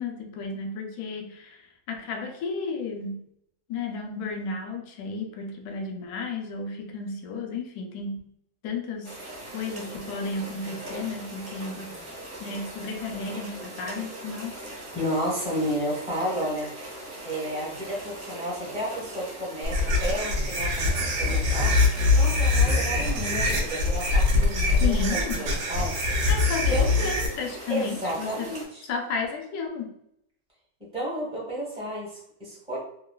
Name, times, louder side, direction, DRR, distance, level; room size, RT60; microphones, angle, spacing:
voice 1, 0.0-3.3 3.7-8.3 8.6-9.2 9.5-12.0 12.4-14.6 24.8-25.5 26.3-28.5 28.8-29.9, left 4 dB, 70° left, 3 dB, 1.0 m, -33 dB
sound 1, 9.0-28.6, right 1 dB, 45° right, 0.7 m, -40 dB
voice 2, 14.9-16.7 17.2-21.8 22.1-25.9 26.7-26.9 27.7-28.8 30.8-32.8, equal, 5° right, -5 dB, 0.6 m, -32 dB
sound 2, 19.6-27.3, left 3 dB, 85° right, 0.6 m, -23 dB
3.0 x 2.6 x 2.2 m, 0.73 s
omnidirectional pair, 2.0 m